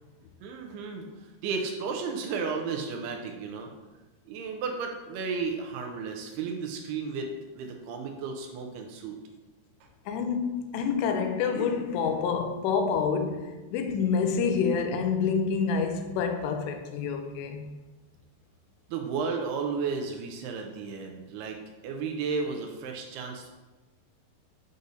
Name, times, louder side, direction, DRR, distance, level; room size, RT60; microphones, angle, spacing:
voice 1, 0.4-3.7 4.3-7.3 7.6-9.2 9.8-9.9 18.9-21.6 21.8-23.5, right 5 dB, 80° right, 2.4 m, -33 dB
voice 2, 10.1-17.6, left 5 dB, 85° left, 2.8 m, -27 dB
8.0 x 5.0 x 2.7 m
omnidirectional pair, 4.9 m